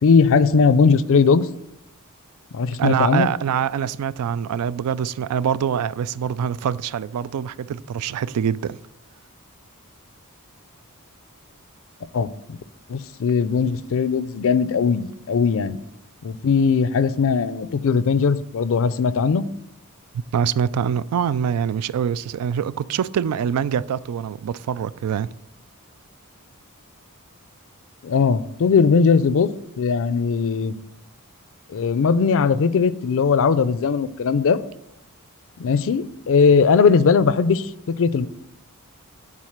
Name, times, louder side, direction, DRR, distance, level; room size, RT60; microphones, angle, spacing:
voice 1, 0.0-1.5 2.5-3.3 12.1-12.6 12.9-15.8 16.2-19.5 28.0-29.5 29.8-30.7 31.7-34.6 35.6-37.7 38.0-38.3, left 5 dB, 60° left, 0.4 m, -19 dB
voice 2, 2.8-8.8 20.3-25.3, right 8 dB, 90° right, 0.3 m, -24 dB
7.4 x 4.0 x 6.5 m
head